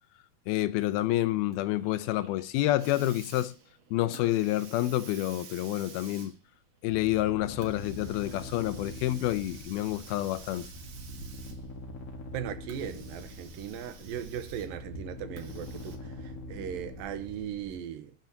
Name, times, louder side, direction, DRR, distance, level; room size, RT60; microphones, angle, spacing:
voice 1, 0.5-3.5 3.9-6.3 6.8-10.7, left 15 dB, 85° left, 2.7 m, -28 dB
Hiss, 1.5-11.9 12.6-14.9 15.4-16.0, right 6 dB, 50° right, 2.4 m, -50 dB
sound 1, 6.9-17.8, left 1 dB, 45° left, 2.6 m, -43 dB
voice 2, 12.3-18.1, right 9 dB, 75° right, 2.6 m, -38 dB
22.5 x 10.5 x 2.8 m
omnidirectional pair, 4.3 m